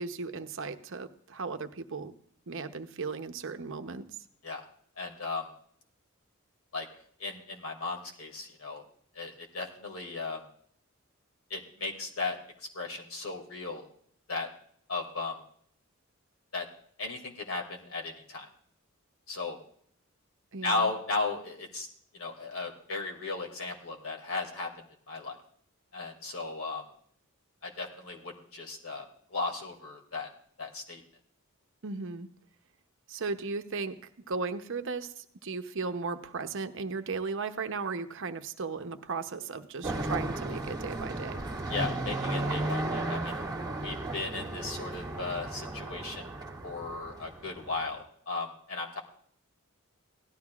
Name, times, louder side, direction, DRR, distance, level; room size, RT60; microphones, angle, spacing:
voice 1, 0.0-2.1 2.5-4.0 20.5-20.9 31.8-32.3 33.1-34.0 34.3-41.4, right 4 dB, 65° right, 8 dB, 0.8 m, -36 dB
voice 2, 5.0-5.5 6.7-6.9 7.2-8.8 9.2-10.4 11.5-12.4 12.7-13.9 14.3-14.5 14.9-15.4 16.5-16.6 17.0-18.5 19.3-19.6 20.6-21.9 22.1-24.7 25.1-25.4 25.9-26.8 27.6-30.3 30.6-31.0 41.7-43.4 43.8-49.0, left 3 dB, 75° left, 1 dB, 2.4 m, -36 dB
sound 1, 39.8-47.9, right 2 dB, 20° right, 1.6 m, -34 dB
17.0 x 12.5 x 2.4 m, 0.62 s
head